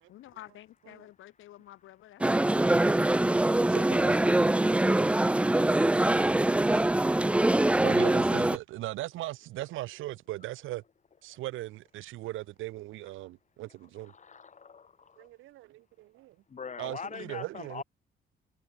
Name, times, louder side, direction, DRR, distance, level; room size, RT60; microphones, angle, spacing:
voice 1, 0.1-3.0, left 14 dB, 85° left, 6.2 m, -51 dB
sound 1, 2.2-8.6, right 1 dB, 5° right, 0.4 m, -24 dB
voice 2, 3.7-4.1 7.8-10.8 11.2-14.1 15.2-16.4 16.8-17.8, right 16 dB, 85° right, 0.8 m, -39 dB
voice 3, 14.1-14.9 16.5-17.8, left 6 dB, 35° left, 2.2 m, -41 dB
cardioid pair, 90°, 20 cm